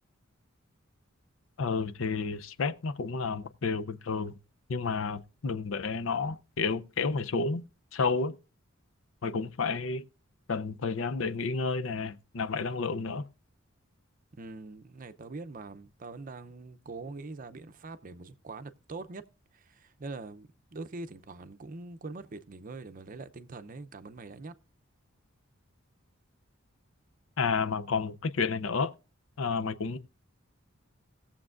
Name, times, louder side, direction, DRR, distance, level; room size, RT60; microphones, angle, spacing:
voice 1, 1.6-4.4 4.7-7.6 7.9-8.4 9.2-10.0 10.5-13.2 27.4-28.9 29.4-30.0, left 4 dB, 65° left, 0.6 m, -31 dB
voice 2, 14.3-19.2 19.5-24.5, right 3 dB, 40° right, 0.6 m, -43 dB
19.5 x 7.2 x 2.5 m
head